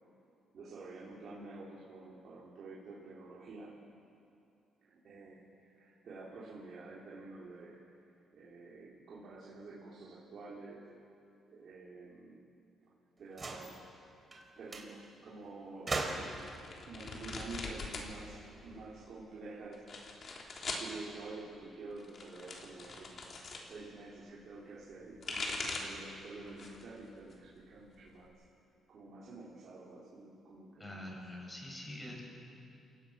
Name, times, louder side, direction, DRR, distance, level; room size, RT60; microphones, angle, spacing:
voice 1, 0.5-3.8 4.9-7.8 8.3-10.9 11.5-12.4 13.2-13.8 14.6-16.3 16.9-19.9 20.7-23.2 23.7-28.3 28.9-31.2, right 3 dB, 60° right, -7 dB, 4.1 m, -49 dB
sound 1, 13.3-13.8 14.3-14.4 14.7-14.9 15.9-16.5 17.7-18.8, right 3 dB, 30° right, 3.5 m, -39 dB
sound 2, 16.3-18.1 18.4-19.1 19.7-20.9 21.9-23.7 24.9-26.0 26.5-26.9 27.3-28.3, left 3 dB, 50° left, 3.5 m, -42 dB
voice 2, 30.8-32.2, left 1 dB, 15° left, -1 dB, 7.1 m, -45 dB
28.0 x 16.5 x 6.0 m, 2.6 s
cardioid pair, 90°, 0 cm